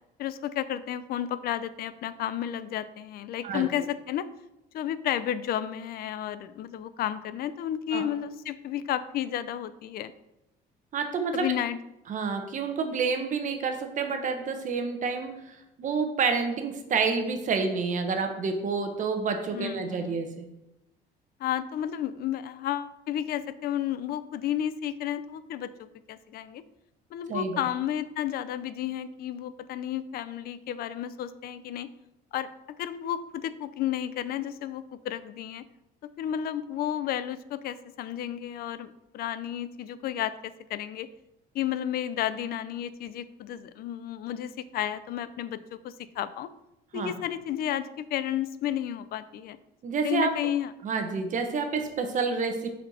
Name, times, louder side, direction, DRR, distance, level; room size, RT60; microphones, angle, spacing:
voice 1, 0.2-4.3 4.7-10.1 11.3-11.8 19.5-20.2 21.4-26.6 27.1-31.9 32.3-35.6 36.2-41.1 41.5-46.5 46.9-49.6 50.0-50.7, left 11 dB, 65° left, 14 dB, 0.4 m, -32 dB
voice 2, 10.9-11.4 12.1-20.5 27.3-27.6 46.9-47.1 49.8-50.3 50.8-52.7, right 5 dB, 50° right, 6 dB, 0.9 m, -29 dB
6.2 x 4.3 x 4.1 m, 0.90 s
cardioid pair, 110°, 17 cm